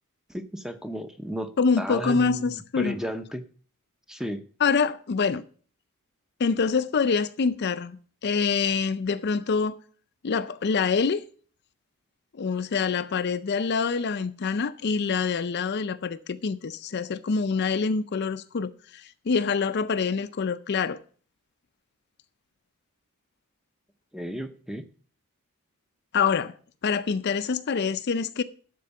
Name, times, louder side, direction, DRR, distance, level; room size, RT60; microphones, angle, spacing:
voice 1, 0.3-3.4 4.1-4.4 24.1-24.8, equal, ahead, 0.6 m, -33 dB
voice 2, 1.6-3.0 4.6-5.4 6.4-9.8 10.2-11.2 12.3-21.0 26.1-26.5 26.8-28.4, left 5 dB, 50° left, 0.4 m, -26 dB
12.5 x 4.5 x 6.8 m
head